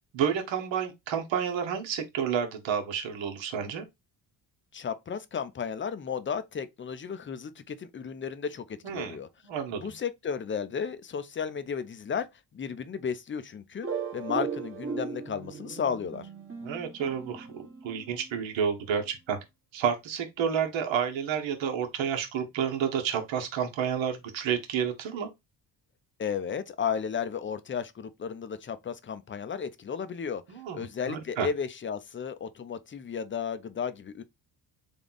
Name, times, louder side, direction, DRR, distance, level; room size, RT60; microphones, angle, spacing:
voice 1, 0.1-3.8 8.8-9.2 9.4-9.9 16.6-19.4 19.7-25.3 30.5-31.5, right 7 dB, 70° right, 1.2 m, -30 dB
voice 2, 4.7-9.3 9.7-12.3 12.5-13.9 14.1-16.3 26.2-30.4 30.7-34.2, left 7 dB, 25° left, 0.5 m, -34 dB
sound 1, 13.8-18.4, right 5 dB, 25° right, 1.1 m, -37 dB
3.5 x 2.3 x 3.9 m
supercardioid pair, 75°, 47 cm